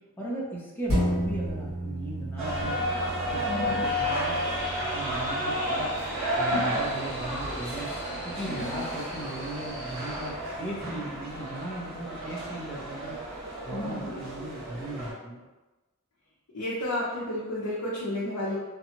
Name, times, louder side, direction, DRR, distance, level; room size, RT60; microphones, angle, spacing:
voice 1, 0.2-2.8 3.3-4.4 4.8-5.9 6.4-7.9 8.2-13.2 13.6-15.4, right 1 dB, 10° left, -6 dB, 0.6 m, -37 dB
sound 1, 0.9-9.7 10.1-10.2, equal, 70° right, 1.5 m, -35 dB
sound 2, 2.4-15.1, equal, 30° right, 1.4 m, -32 dB
voice 2, 3.4-3.9 6.4-6.8 8.5-8.8 13.7-14.2 16.5-18.6, left 1 dB, 75° left, -7 dB, 0.6 m, -32 dB
sound 3, 3.8-10.3, equal, 45° right, 1.1 m, -39 dB
2.8 x 2.3 x 2.8 m, 1.1 s
head